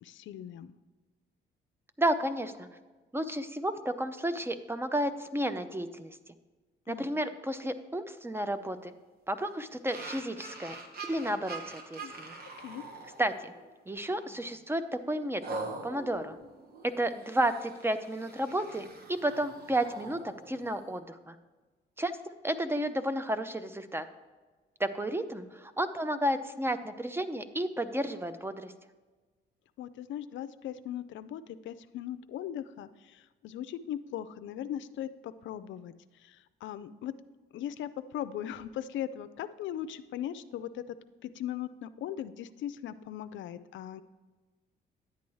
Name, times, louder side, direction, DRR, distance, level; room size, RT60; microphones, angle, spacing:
voice 1, 0.0-0.7 6.9-7.1 12.0-12.1 12.6-12.8 29.8-37.1 37.5-41.0 41.2-44.0, left 10 dB, 70° left, 12 dB, 0.4 m, -39 dB
voice 2, 2.0-2.7 3.1-6.2 6.9-8.9 9.3-10.8 11.0-12.3 13.2-13.5 13.9-15.4 15.8-16.4 16.8-21.4 22.0-22.1 22.4-24.1 24.8-28.7, right 1 dB, 10° right, 11 dB, 0.5 m, -32 dB
sound 1, 9.9-13.7 14.2-14.4 15.4-21.0, right 3 dB, 50° right, 1.3 m, -44 dB
10.5 x 8.4 x 3.1 m, 1.3 s
cardioid pair, 90°, 20 cm